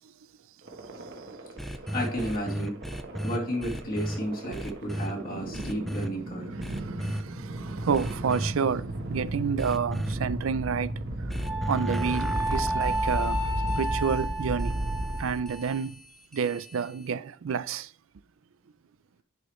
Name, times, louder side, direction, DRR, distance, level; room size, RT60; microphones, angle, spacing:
sound 1, 0.7-15.8, right 1 dB, 55° right, 1.1 m, -35 dB
sound 2, 1.6-4.2 4.5-5.1 5.5-6.1 6.6-7.2 7.9-8.5 9.6-10.1 11.3-17.1, equal, ahead, 0.4 m, -35 dB
voice 1, 1.9-2.8 3.2-6.5, equal, 45° left, 2.6 m, -32 dB
voice 2, 6.8-10.9 11.7-13.5 13.8-14.7 15.2-16.0 16.3-17.9, right 6 dB, 75° right, 0.4 m, -29 dB
Wind instrument woodwind instrument, 11.4-15.8, right 1 dB, 20° right, 1.5 m, -32 dB
9.8 x 5.0 x 3.1 m
head